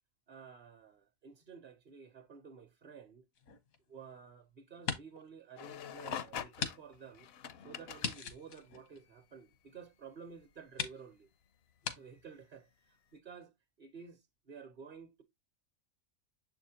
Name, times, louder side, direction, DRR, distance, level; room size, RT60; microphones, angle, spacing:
voice 1, 0.3-3.2 3.9-7.3 7.6-11.3 11.8-13.5 13.8-15.2, right 6 dB, 45° right, 0.8 m, -52 dB
sound 1, 3.4-4.3 4.7-5.3 5.7-5.8 6.6-6.8 7.0-7.1 8.0-9.6 10.2-10.3 10.7-11.0 11.8-12.0, left 6 dB, 85° left, 1.5 m, -40 dB
sound 2, 5.6-8.2 10.3-10.5 11.8-11.9, left 8 dB, 60° left, 0.7 m, -44 dB
7.1 x 4.9 x 2.7 m
omnidirectional pair, 1.4 m